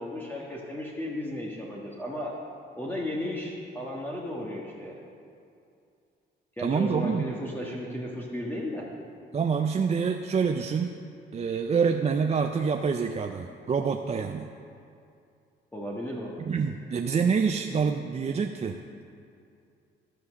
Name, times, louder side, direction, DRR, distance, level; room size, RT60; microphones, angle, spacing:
voice 1, 0.0-2.3 2.8-4.9 6.6-8.9 15.7-16.4, left 1 dB, 10° left, -4 dB, 1.5 m, -34 dB
voice 2, 6.6-7.3 9.3-10.9 11.3-14.5 16.4-18.8, right 6 dB, 35° right, 5 dB, 0.5 m, -26 dB
13.5 x 6.0 x 6.2 m, 2.5 s
cardioid pair, 90°, 20 cm